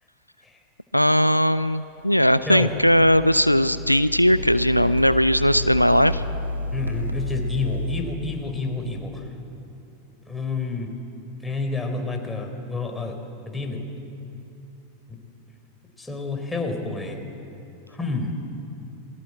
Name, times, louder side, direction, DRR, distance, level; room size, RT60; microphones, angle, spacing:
voice 1, 0.9-6.2, equal, 90° left, 14 dB, 0.6 m, -19 dB
sound 1, 2.0-8.0, left 1 dB, 75° right, 2.6 m, -31 dB
voice 2, 6.7-9.2 10.3-10.9 11.4-13.2 13.5-13.9 15.1-15.2 16.0-17.2 17.9-18.3, left 3 dB, 10° left, 3 dB, 4.0 m, -29 dB
28.0 x 21.5 x 7.6 m, 2.9 s
figure-of-eight pair, 90°, 0 cm